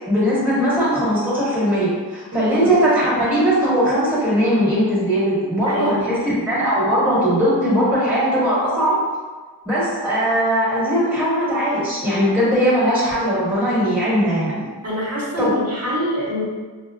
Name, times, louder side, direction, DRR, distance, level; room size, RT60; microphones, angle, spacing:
voice 1, 0.1-9.0 9.6-14.7 15.4-15.6, equal, 5° right, -10 dB, 1.3 m, -19 dB
voice 2, 2.3-2.7 5.7-6.2 14.8-16.4, equal, 35° right, -6 dB, 0.9 m, -25 dB
4.2 x 2.0 x 2.5 m, 1.4 s
wide cardioid pair, 100°, 42 cm